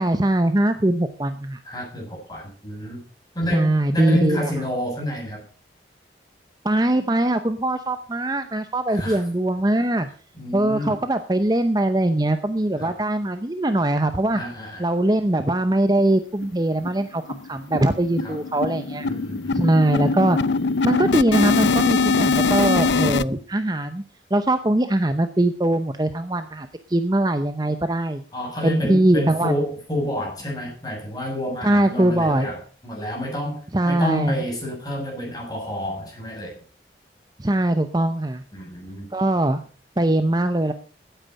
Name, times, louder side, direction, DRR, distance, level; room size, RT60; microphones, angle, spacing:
voice 1, 0.0-1.6 3.5-4.5 6.6-10.1 10.5-14.4 14.8-19.1 19.5-20.4 20.8-24.0 24.3-28.2 28.6-29.6 31.6-32.5 33.7-34.4 37.4-38.4 39.1-39.6 40.0-40.7, right 1 dB, 20° right, 9 dB, 0.7 m, -21 dB
voice 2, 1.6-3.0 3.3-5.4 8.9-9.2 10.4-11.0 12.8-12.9 14.3-14.8 18.2-18.4 19.0-19.6 28.3-36.5 38.5-39.1, equal, 20° left, -1 dB, 7.1 m, -28 dB
sound 1, 16.0-16.1 16.4-16.5 16.8-17.0 17.3-23.2, left 4 dB, 85° left, 0.5 m, -22 dB
15.5 x 9.2 x 5.3 m, 0.41 s
head